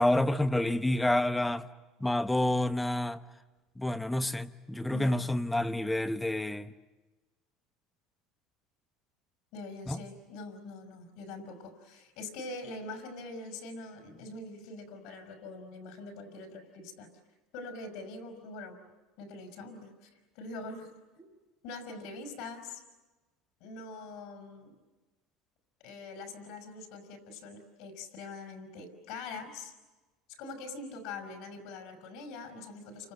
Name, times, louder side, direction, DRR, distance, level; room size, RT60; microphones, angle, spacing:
voice 1, 0.0-1.7 2.0-3.2 3.8-6.7 9.9-10.0, left 1 dB, 5° left, 1.1 m, -28 dB
voice 2, 4.9-5.3 9.5-17.1 17.5-18.8 19.2-20.1 20.3-20.9 21.2-21.3 21.6-22.8 23.6-24.7 25.8-29.7 30.4-33.1, left 3 dB, 70° left, 5.8 m, -43 dB
29.5 x 25.5 x 7.8 m
supercardioid pair, 110°, 0 cm